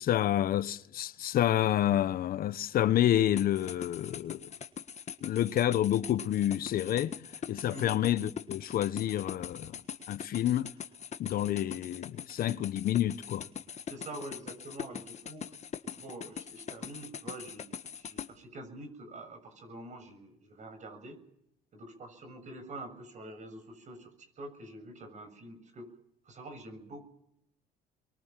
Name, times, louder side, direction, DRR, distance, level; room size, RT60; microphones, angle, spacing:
voice 1, 0.0-4.5 5.2-7.1 7.5-9.8 10.1-10.7 11.2-13.4, left 12 dB, 60° left, 1.0 m, -28 dB
sound 1, 3.4-18.3, left 8 dB, 40° left, 1.6 m, -42 dB
voice 2, 13.9-15.5 16.0-21.2 21.7-25.9 26.2-27.0, right 1 dB, 45° right, 7.1 m, -46 dB
25.5 x 23.0 x 7.6 m
cardioid pair, 110°, 17 cm